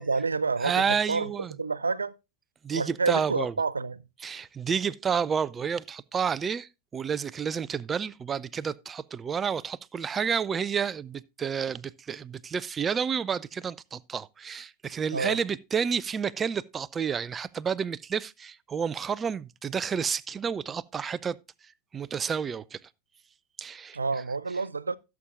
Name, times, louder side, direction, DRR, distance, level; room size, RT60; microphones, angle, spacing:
voice 1, 0.0-1.3 1.6-2.1 2.7-4.0 15.1-15.4 23.9-25.0, right 4 dB, 75° right, 0.5 m, -28 dB
voice 2, 0.6-1.5 2.6-3.5 4.2-21.4 21.9-22.8 23.6-24.0, right 6 dB, 20° right, 0.4 m, -30 dB
16.5 x 7.1 x 2.5 m
figure-of-eight pair, 90°, 0 cm